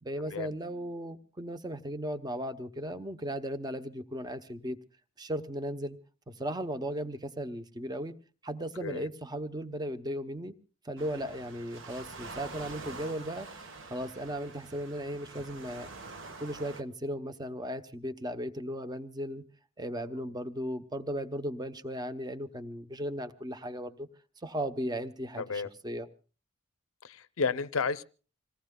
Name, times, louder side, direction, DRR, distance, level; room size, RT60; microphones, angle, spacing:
voice 1, 0.0-4.8 5.2-6.0 6.3-8.1 8.4-10.5 10.8-13.5 13.9-15.9 16.4-19.4 19.8-24.1 24.4-26.1, equal, 20° right, 11 dB, 0.7 m, -36 dB
Waves surf, 11.0-16.8, right 3 dB, 60° right, 1.2 m, -46 dB
voice 2, 25.4-25.7 27.0-28.0, left 5 dB, 70° left, 15 dB, 0.6 m, -32 dB
27.0 x 18.5 x 2.2 m, 0.37 s
head